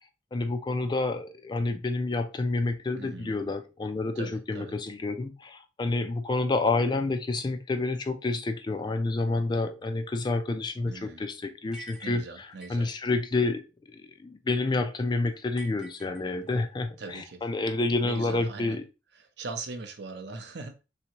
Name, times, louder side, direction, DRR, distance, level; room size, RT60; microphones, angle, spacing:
voice 1, 0.3-12.2 12.7-13.6 13.9-18.8, left 2 dB, 25° left, 0.3 m, -29 dB
voice 2, 3.0-3.3 4.2-4.8 10.9-11.2 12.0-12.9 17.0-17.5 18.0-18.8 19.2-20.8, right 3 dB, 65° right, 0.6 m, -40 dB
sound 1, 11.7-12.9 15.6-16.7, right 2 dB, 5° right, 0.8 m, -48 dB
3.4 x 2.8 x 2.8 m
head